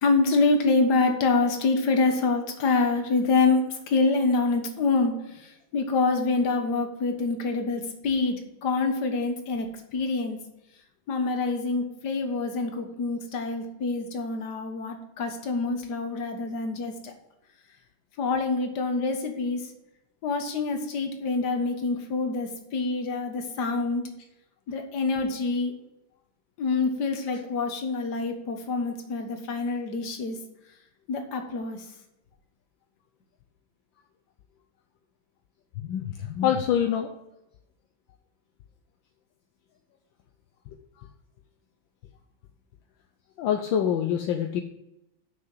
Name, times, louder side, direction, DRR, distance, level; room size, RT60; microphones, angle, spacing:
voice 1, 0.0-10.4 11.1-17.1 18.2-19.7 20.2-24.0 24.7-25.7 26.6-30.4 31.1-31.9, left 3 dB, 60° left, 5 dB, 1.8 m, -26 dB
voice 2, 35.8-37.1 41.0-41.1 43.4-44.6, left 9 dB, 75° left, 4 dB, 1.4 m, -26 dB
7.0 x 6.3 x 7.7 m, 0.89 s
omnidirectional pair, 2.1 m